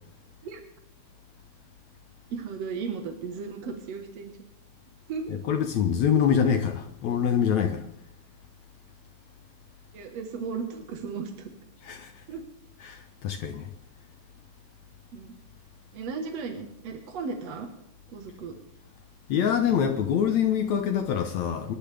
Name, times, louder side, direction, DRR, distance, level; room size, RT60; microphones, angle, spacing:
voice 1, 2.3-4.4 5.1-5.4 9.9-11.5 12.3-12.4 15.1-15.3 15.9-17.7 18.1-18.5, right 5 dB, 55° right, 2.0 m, -35 dB
voice 2, 5.3-7.9 11.8-12.1 12.8-13.7 19.3-21.7, left 8 dB, 75° left, 1.6 m, -25 dB
27.0 x 12.0 x 3.5 m
omnidirectional pair, 4.5 m